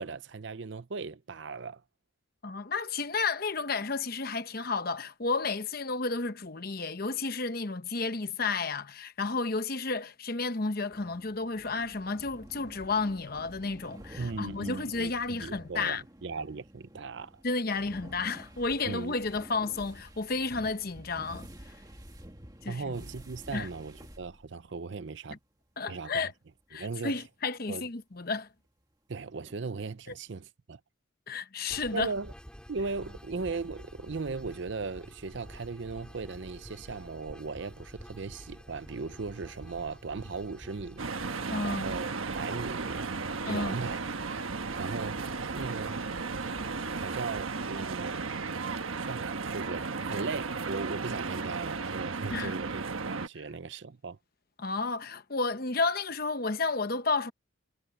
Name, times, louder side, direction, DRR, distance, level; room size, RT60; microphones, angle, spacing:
voice 1, 0.0-1.8 14.2-17.3 18.9-19.1 22.7-25.4 25.9-26.3 26.7-27.1 27.7-27.8 29.1-30.8 31.9-32.3 32.7-43.1 43.5-44.0 44.3-46.1 46.9-48.3 49.0-54.2, right 4 dB, 60° right, 0.6 m, -38 dB
voice 2, 2.4-16.0 17.4-21.7 22.6-23.0 23.5-23.7 25.3-25.4 25.8-26.3 26.7-28.5 31.3-32.1 41.5-41.9 43.4-43.9 52.3-52.6 54.6-57.3, left 3 dB, 45° left, 1.0 m, -32 dB
sound 1, 10.9-24.7 24.9-25.4 26.0-26.1 29.5-29.6, right 1 dB, 20° right, 1.9 m, -50 dB
sound 2, 31.7-47.4, equal, 5° left, 3.6 m, -49 dB
sound 3, 41.0-53.3, right 4 dB, 85° right, 1.2 m, -35 dB
head